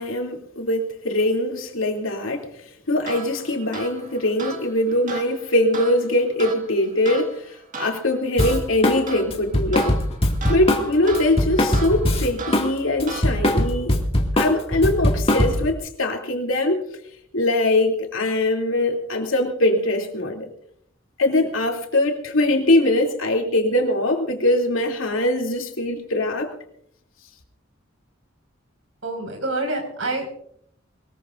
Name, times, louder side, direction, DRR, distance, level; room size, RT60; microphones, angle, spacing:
voice 1, 0.0-2.5 2.9-10.0 10.5-14.0 14.3-16.8 17.3-20.5 21.2-26.5, left 1 dB, 80° left, 2 dB, 3.0 m, -22 dB
sound 1, 3.0-13.7, right 4 dB, 40° right, 2.1 m, -37 dB
Drum kit, 8.4-9.0 9.3-12.7 13.0-15.7, left 1 dB, 30° left, 2.2 m, -21 dB
voice 2, 29.0-30.3, right 2 dB, 80° right, 3 dB, 5.5 m, -27 dB
22.5 x 21.0 x 2.6 m, 0.67 s
head